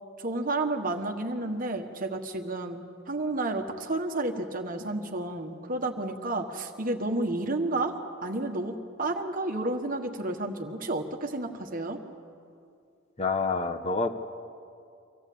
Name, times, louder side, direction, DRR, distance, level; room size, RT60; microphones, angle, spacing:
voice 1, 0.2-12.0, right 2 dB, 45° right, 5 dB, 1.4 m, -31 dB
voice 2, 13.2-14.1, left 4 dB, 35° left, 6 dB, 0.9 m, -27 dB
24.5 x 15.0 x 8.4 m, 2.4 s
head